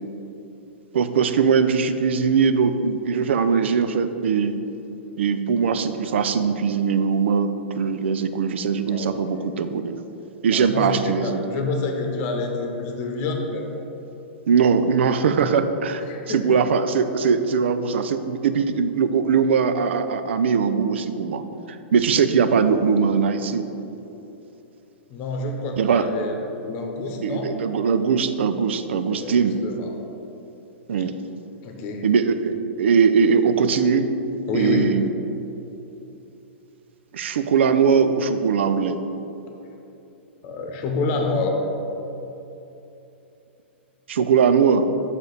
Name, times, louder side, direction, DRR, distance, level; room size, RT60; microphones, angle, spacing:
voice 1, 0.9-4.6 5.2-10.0 10.4-11.4 14.5-21.4 21.9-23.7 25.8-26.0 27.2-29.6 30.9-31.2 32.0-34.1 34.5-35.1 37.1-39.0 44.1-44.9, right 6 dB, 70° right, 10 dB, 0.4 m, -21 dB
voice 2, 8.8-9.4 10.5-13.8 16.0-16.6 25.1-27.5 29.1-29.9 31.6-32.1 34.5-34.9 40.4-41.6, left 3 dB, 40° left, 2 dB, 0.9 m, -28 dB
6.7 x 4.8 x 4.0 m, 2.9 s
hypercardioid pair, 115°, 7 cm